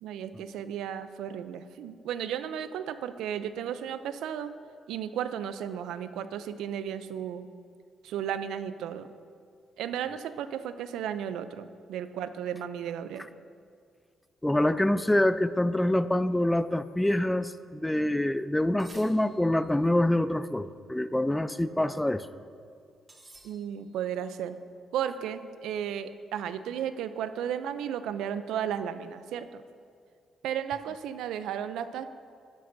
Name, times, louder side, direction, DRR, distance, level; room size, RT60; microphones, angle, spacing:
voice 1, 0.0-4.5 4.9-7.5 8.0-9.1 9.8-13.3 23.4-24.6 24.9-29.6 30.4-32.1, right 9 dB, 85° right, 12 dB, 0.4 m, -34 dB
voice 2, 14.4-22.3, left 1 dB, 10° left, 13 dB, 0.3 m, -26 dB
sound 1, 18.8-19.7 23.1-24.0, right 2 dB, 30° right, 2.2 m, -53 dB
12.0 x 11.0 x 2.7 m, 2.2 s
cardioid pair, 90°, 0 cm